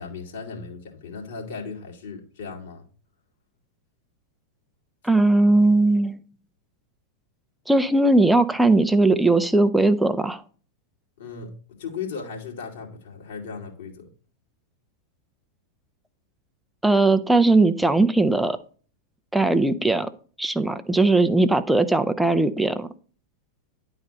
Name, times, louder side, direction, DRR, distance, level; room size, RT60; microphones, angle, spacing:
voice 1, 0.0-2.8 11.2-14.1, left 5 dB, 60° left, 2.3 m, -36 dB
voice 2, 5.0-6.2 7.7-10.4 16.8-18.6 19.3-20.1 20.4-22.9, right 2 dB, 5° right, 0.6 m, -19 dB
10.5 x 4.1 x 5.1 m
figure-of-eight pair, 90°, 0 cm